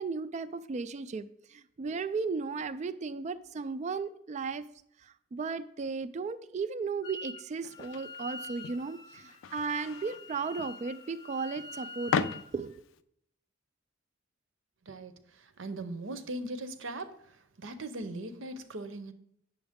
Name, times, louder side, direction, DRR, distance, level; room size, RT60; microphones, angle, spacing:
voice 1, 0.0-4.7 5.0-12.8, right 4 dB, 35° right, 13 dB, 0.3 m, -35 dB
Wind instrument woodwind instrument, 7.0-7.4 7.7-12.5, left 2 dB, 20° left, 0.6 m, -46 dB
sound 1, 7.6-13.0, left 6 dB, 75° left, 0.4 m, -38 dB
voice 2, 15.6-17.1 17.6-19.1, right 2 dB, 75° right, 10 dB, 0.8 m, -39 dB
8.8 x 7.0 x 3.6 m, 0.72 s
head